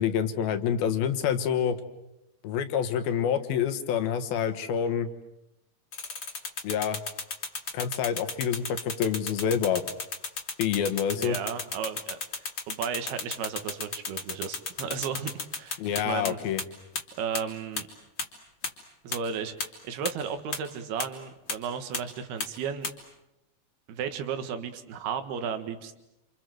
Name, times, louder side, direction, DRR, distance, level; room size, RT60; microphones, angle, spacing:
voice 1, 0.0-1.8 2.4-5.1 6.6-7.0 7.7-9.8 10.6-11.4 15.8-16.6, left 8 dB, 75° left, 9 dB, 3.2 m, -27 dB
sound 1, 5.9-16.3 16.6-16.7 17.0-17.1 17.4-17.5 17.8-17.9 18.2-18.3 18.6-18.7 19.1-19.2 19.6-19.7 20.1-20.2 20.5-20.6 21.0-21.1 21.5-21.6 21.9-22.0 22.4-22.5 22.8-22.9, left 4 dB, 35° left, 2.7 m, -32 dB
voice 2, 11.2-15.8 16.1-16.4 17.2-17.9 19.0-22.9 23.9-26.0, right 7 dB, 85° right, 9 dB, 3.7 m, -34 dB
28.0 x 27.5 x 7.8 m, 0.89 s
omnidirectional pair, 4.4 m